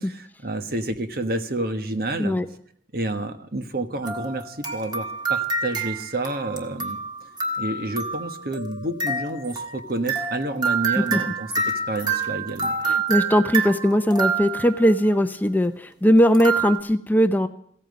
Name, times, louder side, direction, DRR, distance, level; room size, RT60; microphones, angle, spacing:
voice 1, 0.0-2.4 2.9-7.0 7.6-11.5 11.9-12.8, right 2 dB, 50° right, 8 dB, 1.4 m, -29 dB
sound 1, 4.0-14.9 16.3-16.8, right 4 dB, 25° right, 1.6 m, -27 dB
voice 2, 12.8-17.5, equal, 10° left, 9 dB, 0.6 m, -19 dB
16.0 x 9.0 x 9.3 m, 0.63 s
head